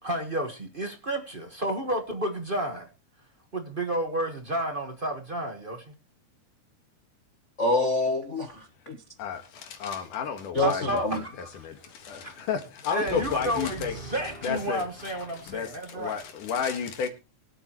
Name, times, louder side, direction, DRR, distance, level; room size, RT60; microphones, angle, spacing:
voice 1, 0.0-2.9 3.5-5.8 10.6-11.5 12.2-12.3 12.9-16.1, right 1 dB, 40° right, 0.7 m, -31 dB
voice 2, 7.6-9.0 10.5-11.2, left 1 dB, 60° left, 0.7 m, -26 dB
voice 3, 9.2-17.1, left 7 dB, 85° left, 3.2 m, -33 dB
23.0 x 8.3 x 3.1 m
omnidirectional pair, 3.6 m